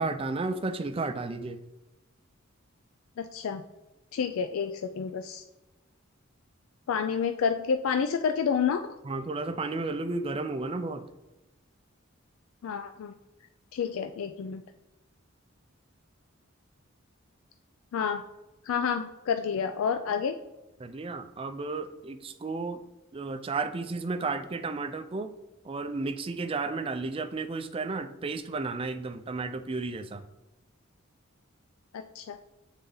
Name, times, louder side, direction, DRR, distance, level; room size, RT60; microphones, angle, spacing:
voice 1, 0.0-1.6 9.0-11.0 20.8-22.8 23.1-25.3 25.6-30.2, right 3 dB, 25° right, 8 dB, 0.4 m, -33 dB
voice 2, 3.2-3.6 4.1-5.4 6.9-9.0 12.6-13.1 13.7-14.6 17.9-18.2 18.6-20.4 32.2-32.4, left 6 dB, 80° left, 7 dB, 0.3 m, -29 dB
6.9 x 4.0 x 3.8 m, 1.0 s
head